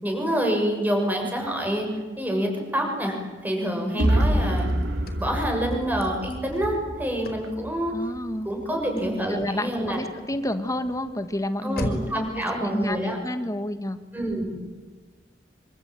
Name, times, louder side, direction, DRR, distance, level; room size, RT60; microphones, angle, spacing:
voice 1, 0.0-1.9 2.2-3.2 3.4-4.7 5.2-7.9 8.4-10.0 11.6-13.2 14.1-14.5, equal, 10° right, 2 dB, 6.7 m, -27 dB
Car / Slam, 3.6-12.3, left 1 dB, 55° left, 4.7 m, -41 dB
sound 1, 4.0-7.9, right 1 dB, 70° right, 2.8 m, -26 dB
voice 2, 7.9-14.0, left 1 dB, 20° left, 10 dB, 1.5 m, -30 dB
25.5 x 25.0 x 9.1 m, 1.3 s
head